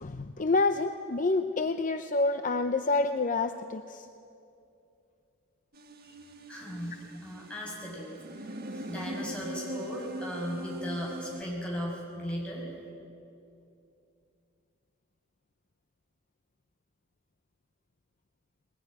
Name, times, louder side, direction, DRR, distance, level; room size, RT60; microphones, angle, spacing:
voice 1, 0.0-4.1, left 3 dB, 40° left, 8 dB, 0.6 m, -28 dB
sound 1, 5.7-11.4, right 1 dB, 45° right, 1.4 m, -41 dB
voice 2, 6.5-8.1 8.3-12.7, equal, 5° left, -4 dB, 6.0 m, -37 dB
21.0 x 20.0 x 9.7 m, 2.6 s
head